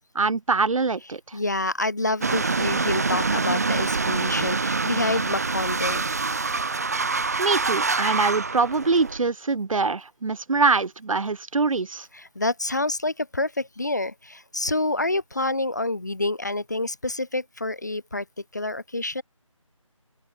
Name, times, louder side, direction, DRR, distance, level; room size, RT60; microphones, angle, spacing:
voice 1, 0.1-1.4 7.4-12.1, right 4 dB, 75° right, 0.6 m, -24 dB
voice 2, 1.3-6.1 12.4-18.2 18.5-19.2, left 2 dB, 35° left, 0.4 m, -27 dB
sound 1, 2.2-9.2, right 4 dB, 30° right, 0.9 m, -25 dB
open air
figure-of-eight pair, 165°, 17 cm